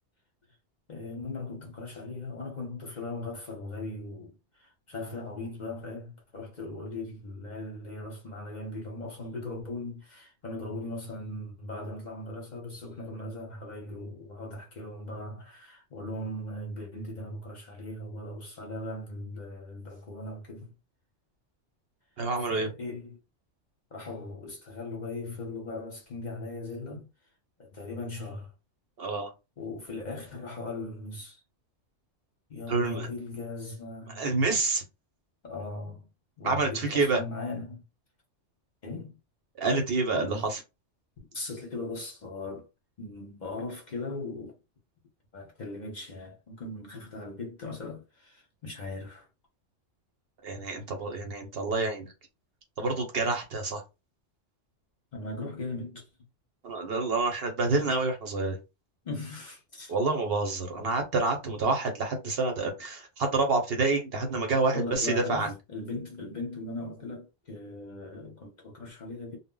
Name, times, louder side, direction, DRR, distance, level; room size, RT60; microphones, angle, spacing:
voice 1, 0.9-20.7 22.4-23.2 23.9-27.1 27.6-28.5 29.6-31.4 32.5-34.2 35.4-36.1 36.4-37.8 38.8-39.2 40.1-40.5 41.3-42.7 43.0-44.5 45.3-49.3 55.1-56.1 59.0-59.9 64.7-69.4, left 2 dB, 45° left, 0.7 m, -39 dB
voice 2, 22.2-22.7 29.0-29.3 32.7-33.1 34.2-34.8 36.4-37.2 39.6-40.6 50.4-52.1 52.8-53.8 56.6-58.6 59.9-65.5, right 3 dB, 60° right, 0.9 m, -28 dB
2.1 x 2.0 x 3.7 m
omnidirectional pair, 1.2 m